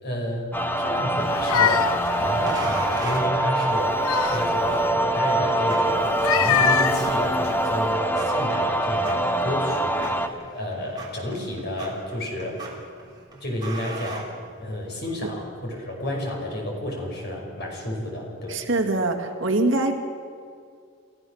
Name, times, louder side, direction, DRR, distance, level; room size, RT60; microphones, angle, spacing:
voice 1, 0.0-1.9 2.2-4.0 4.3-12.6 13.4-14.3 14.6-18.6, left 1 dB, 50° left, 0 dB, 5.5 m, -31 dB
sound 1, 0.5-10.3, right 1 dB, 10° left, 0.9 m, -24 dB
sound 2, 1.2-3.3 3.7-4.9 6.1-7.9, left 7 dB, 85° left, 0.7 m, -26 dB
sound 3, 2.5-15.0, right 3 dB, 20° right, 3.5 m, -41 dB
voice 2, 18.5-20.0, right 2 dB, 60° right, 3 dB, 2.2 m, -23 dB
29.5 x 14.5 x 6.5 m, 2.3 s
head